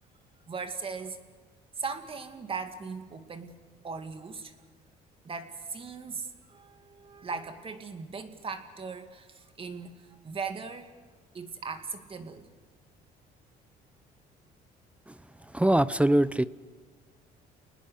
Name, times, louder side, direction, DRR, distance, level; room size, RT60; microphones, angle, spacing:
voice 1, 0.5-1.2 1.8-3.6 3.8-4.5 5.2-11.0 11.3-12.5, right 5 dB, 30° right, 7 dB, 2.4 m, -38 dB
voice 2, 15.5-16.4, right 1 dB, 5° right, 16 dB, 0.6 m, -22 dB
28.5 x 20.0 x 6.5 m, 1.5 s
cardioid pair, 110°, 17 cm